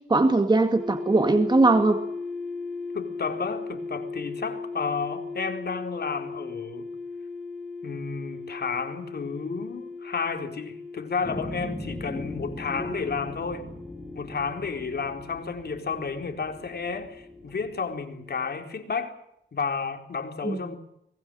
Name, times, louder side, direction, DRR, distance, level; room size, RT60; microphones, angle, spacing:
voice 1, 0.1-2.0 20.4-20.6, right 2 dB, 20° right, 2.1 m, -20 dB
sound 1, 0.8-18.7, left 4 dB, ahead, 7.7 m, -38 dB
voice 2, 2.9-6.9 7.8-13.7 14.1-19.2 19.5-20.8, left 5 dB, 55° left, 4.2 m, -32 dB
sound 2, 11.2-17.8, left 1 dB, 15° left, 3.7 m, -39 dB
25.0 x 20.0 x 7.8 m
wide cardioid pair, 110°, 20 cm